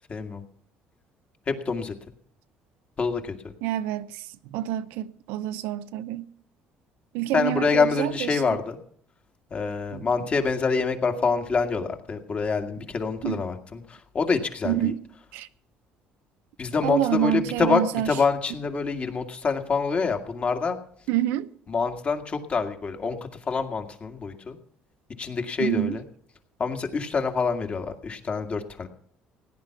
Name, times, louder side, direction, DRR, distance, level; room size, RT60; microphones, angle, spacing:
voice 1, 0.1-0.4 1.5-1.9 3.0-3.3 7.3-8.8 9.5-14.9 16.6-20.8 21.7-23.2 23.5-24.6 25.2-26.0 26.6-28.9, left 4 dB, 40° left, 2.0 m, -26 dB
voice 2, 3.6-6.2 7.1-8.4 9.9-10.0 13.2-13.4 14.6-15.0 15.3-15.5 16.8-18.1 21.1-21.5 25.6-26.0, right 13 dB, 85° right, 0.6 m, -27 dB
17.0 x 9.7 x 5.9 m
supercardioid pair, 90°, 4 cm